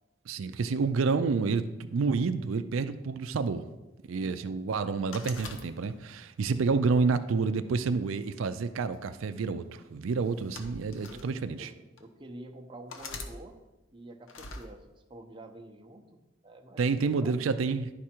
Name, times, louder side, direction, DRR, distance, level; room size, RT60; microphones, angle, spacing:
voice 1, 0.3-3.6 4.1-11.7 16.8-17.9, right 4 dB, 90° right, 10 dB, 0.4 m, -29 dB
voice 2, 4.1-4.6 10.9-13.6 13.9-14.8 15.1-16.8 17.1-17.5, right 1 dB, 25° right, 4 dB, 0.7 m, -48 dB
sound 1, 5.1-6.2 6.8-8.0 8.9-9.2 10.2-11.3 12.0-12.1 12.9-13.3 14.3-14.7, left 3 dB, 85° left, 1.0 m, -43 dB
11.0 x 4.9 x 4.4 m, 1.1 s
head